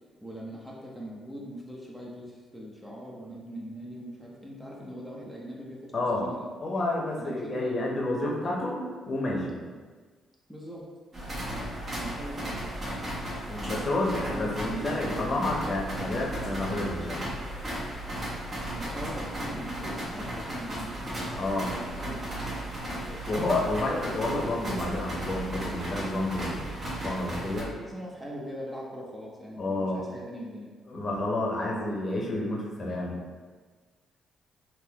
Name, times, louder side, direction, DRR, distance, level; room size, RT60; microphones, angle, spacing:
voice 1, 0.2-5.9 6.2-6.5 7.2-7.9 10.5-10.9 11.9-12.7 14.3-15.2 18.8-22.4 27.7-30.7, equal, 5° right, -5 dB, 0.7 m, -41 dB
voice 2, 5.9-6.3 6.6-9.6 13.5-17.3 21.4-21.7 23.1-27.7 29.6-30.0 30.9-33.2, left 2 dB, 35° left, -3 dB, 0.8 m, -30 dB
sound 1, 11.1-27.6, right 1 dB, 40° right, 1.3 m, -35 dB
3.6 x 2.8 x 2.9 m, 1.4 s
cardioid pair, 90°, 0 cm